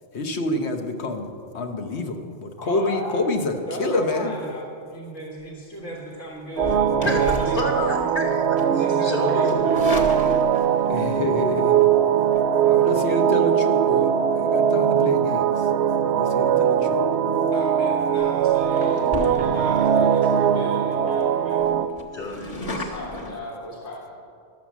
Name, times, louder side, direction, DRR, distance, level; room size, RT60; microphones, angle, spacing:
voice 1, 0.1-4.3 10.9-11.9 12.7-15.5 16.1-17.0, left 2 dB, 70° left, 4 dB, 1.2 m, -27 dB
voice 2, 2.6-7.7 8.6-10.1 17.5-21.6 22.5-24.1, equal, 85° left, -3 dB, 1.9 m, -36 dB
sound 1, 6.5-8.2 8.6-8.8 9.4-10.9 12.2-12.4 17.4-17.7 18.2-18.3 18.7-19.8 20.3-20.4 20.7-20.8 21.1-21.2 21.6-23.3, left 2 dB, 30° left, 1.2 m, -34 dB
sound 2, 6.6-21.9, right 8 dB, 70° right, 0.8 m, -21 dB
voice 3, 6.7-9.5 22.1-22.7, left 2 dB, 50° left, -2 dB, 1.6 m, -30 dB
12.0 x 7.4 x 7.1 m, 2.4 s
omnidirectional pair, 1.2 m